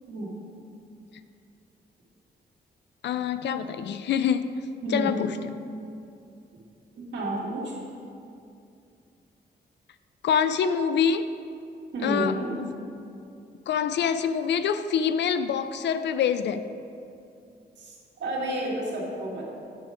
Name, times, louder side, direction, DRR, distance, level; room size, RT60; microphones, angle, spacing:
voice 1, 3.0-4.5 4.9-5.4 10.2-11.3 12.0-12.7 13.7-16.7, left 7 dB, 80° left, 11 dB, 0.4 m, -25 dB
voice 2, 4.8-5.1 7.0-7.7 11.9-12.5 17.8-19.4, right 1 dB, 85° right, -4 dB, 2.0 m, -30 dB
9.2 x 4.9 x 5.9 m, 2.6 s
wide cardioid pair, 155°, 18 cm